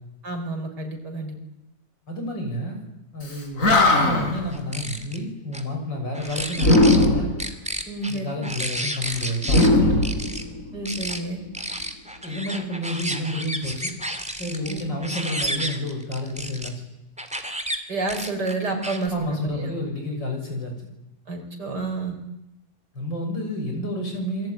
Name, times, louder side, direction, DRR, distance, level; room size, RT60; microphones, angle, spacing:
voice 1, 0.2-1.4 7.9-8.4 10.7-11.4 14.7-15.0 17.9-19.8 21.3-22.1, right 3 dB, 65° right, 4 dB, 5.6 m, -29 dB
voice 2, 2.1-2.8 3.1-7.3 8.1-10.1 12.2-13.9 14.4-16.8 19.1-20.7 22.9-24.5, left 1 dB, 75° left, 3 dB, 7.1 m, -30 dB
Animal, 3.3-3.4 3.6-4.4 6.6-7.4 9.4-10.8, left 2 dB, 45° left, 4.9 m, -18 dB
sound 1, 4.5-5.2 5.5-5.6 6.1-7.1 7.4-9.7 10.0-10.4 10.9-11.2 11.5-16.7 17.2-17.8 18.1-19.1, equal, 5° right, 2.2 m, -31 dB
27.5 x 22.5 x 9.4 m, 0.91 s
omnidirectional pair, 2.0 m